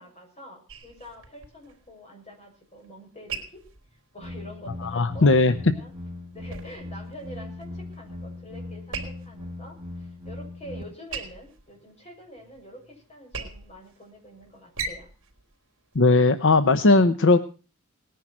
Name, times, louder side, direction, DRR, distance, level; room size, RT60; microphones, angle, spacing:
voice 1, 0.0-3.6 4.1-5.9 6.3-15.1, equal, 30° left, 1 dB, 6.8 m, -46 dB
sound 1, 0.7-16.8, right 5 dB, 65° right, 3.5 m, -42 dB
sound 2, 4.2-10.8, left 2 dB, 5° right, 5.6 m, -39 dB
voice 2, 4.9-5.5 15.9-17.4, left 3 dB, 60° left, 11 dB, 0.8 m, -18 dB
19.0 x 10.5 x 6.1 m, 0.36 s
head